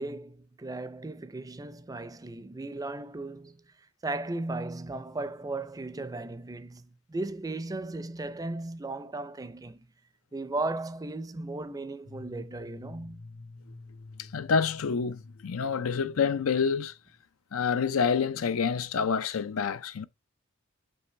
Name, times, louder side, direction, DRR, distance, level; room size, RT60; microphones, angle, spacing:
voice 1, 0.0-3.6 4.0-9.9 10.3-13.2, right 2 dB, 15° right, 0.5 m, -36 dB
sound 1, 12.0-17.2, left 2 dB, 55° left, 1.0 m, -48 dB
voice 2, 14.2-16.9 17.5-20.0, left 6 dB, 80° left, 0.5 m, -27 dB
5.9 x 5.6 x 3.2 m
head